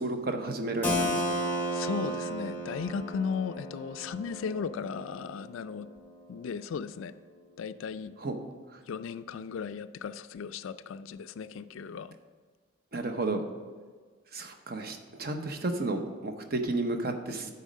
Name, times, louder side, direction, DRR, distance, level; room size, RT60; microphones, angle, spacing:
voice 1, 0.0-1.4 8.2-8.3 12.9-13.4 14.3-17.5, right 2 dB, 45° right, 6 dB, 0.7 m, -32 dB
Keyboard (musical), 0.8-6.4, equal, 10° left, 0.8 m, -34 dB
voice 2, 1.7-5.9 6.3-7.1 7.6-8.1 8.8-12.2, left 6 dB, 80° left, 13 dB, 0.3 m, -36 dB
9.1 x 4.1 x 6.3 m, 1.5 s
head